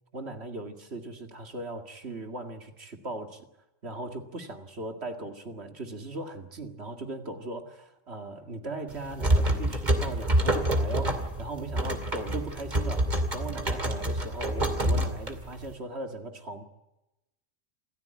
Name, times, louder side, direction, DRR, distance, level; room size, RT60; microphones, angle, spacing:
voice 1, 0.1-3.5 3.8-16.6, right 2 dB, 55° right, 2.4 m, -38 dB
sound 1, 8.9-15.7, right 1 dB, 35° right, 2.6 m, -27 dB
27.5 x 14.5 x 9.2 m
omnidirectional pair, 1.3 m